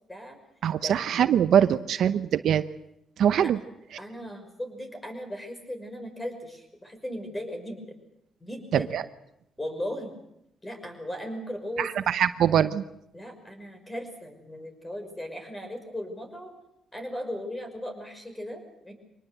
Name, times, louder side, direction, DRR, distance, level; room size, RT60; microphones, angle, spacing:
voice 1, 0.6-2.6 3.2-3.6 8.7-9.0 11.8-12.8, right 9 dB, 70° right, 13 dB, 0.8 m, -23 dB
voice 2, 4.0-7.8 8.4-9.0 9.6-10.1 10.6-11.9 13.1-16.5 16.9-18.9, equal, 15° left, 6 dB, 5.9 m, -37 dB
24.5 x 19.5 x 7.9 m, 0.79 s
cardioid pair, 90°, 0 cm